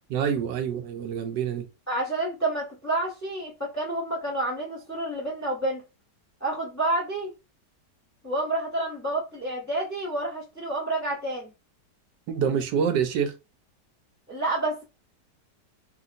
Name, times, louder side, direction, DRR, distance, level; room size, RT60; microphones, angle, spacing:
voice 1, 0.1-1.7 12.3-13.3, right 7 dB, 90° right, 1.3 m, -26 dB
voice 2, 1.9-5.8 6.4-7.3 8.2-11.5 14.3-14.8, right 2 dB, 15° left, 0.7 m, -29 dB
2.8 x 2.8 x 2.5 m
omnidirectional pair, 1.9 m